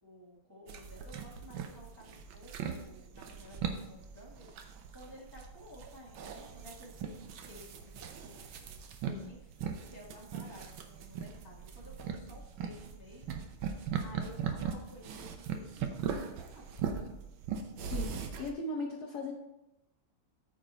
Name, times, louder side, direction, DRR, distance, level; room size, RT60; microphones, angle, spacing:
voice 1, 0.0-8.7 9.2-16.9, equal, 15° right, -3 dB, 1.1 m, -54 dB
sound 1, 0.7-18.5, right 7 dB, 70° right, 1.5 m, -40 dB
voice 2, 17.9-19.3, left 3 dB, 60° left, 1 dB, 1.2 m, -38 dB
9.1 x 5.1 x 4.3 m, 0.89 s
omnidirectional pair, 2.4 m